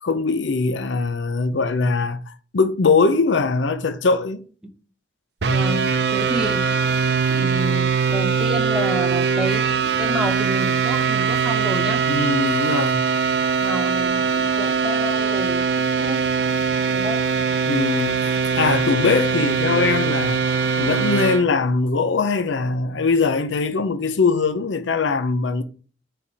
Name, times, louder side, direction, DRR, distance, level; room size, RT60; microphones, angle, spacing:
voice 1, 0.0-4.4 12.1-13.1 17.7-18.3 18.6-20.4 20.8-25.6, left 4 dB, 80° left, 0.6 m, -21 dB
sound 1, 5.4-21.4, right 6 dB, 60° right, 0.6 m, -21 dB
voice 2, 5.5-6.8 7.3-12.0 13.6-16.2 16.9-17.2, equal, 5° right, 1.0 m, -30 dB
9.5 x 3.5 x 4.1 m
head